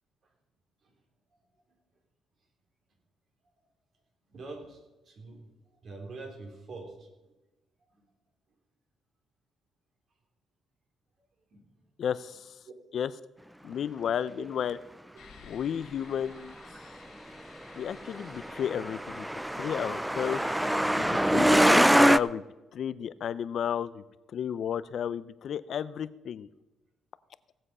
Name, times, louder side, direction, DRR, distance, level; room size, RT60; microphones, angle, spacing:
voice 1, 4.3-4.8 5.1-5.4 5.8-7.1 11.5-11.7 12.7-12.8 14.4-14.5, right 3 dB, 55° right, 2 dB, 3.7 m, -44 dB
voice 2, 12.0-12.5 12.9-13.1 13.6-14.8 15.5-16.5 17.7-19.3 19.5-20.4 20.9-22.4 22.7-24.0 24.3-26.5, left 8 dB, 65° left, 16 dB, 0.6 m, -32 dB
sound 1, 15.2-21.7, left 7 dB, 80° left, 2.4 m, -55 dB
Truck, 18.1-22.2, right 1 dB, 5° right, 0.3 m, -23 dB
17.0 x 7.7 x 5.6 m, 1.1 s
cardioid pair, 90°, 0 cm